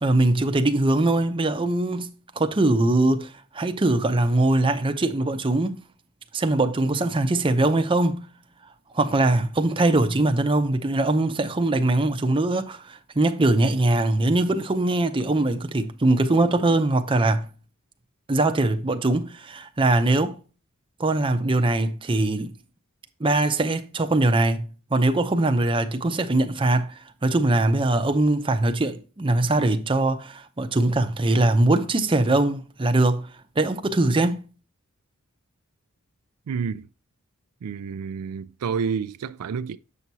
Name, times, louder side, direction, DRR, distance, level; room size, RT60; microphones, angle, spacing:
voice 1, 0.0-5.8 6.3-8.3 8.9-17.5 18.3-20.4 21.0-22.5 23.2-34.4, right 2 dB, 25° right, 0.6 m, -22 dB
voice 2, 36.5-36.9 37.6-39.8, right 6 dB, 85° right, 0.4 m, -29 dB
7.8 x 6.0 x 2.7 m
head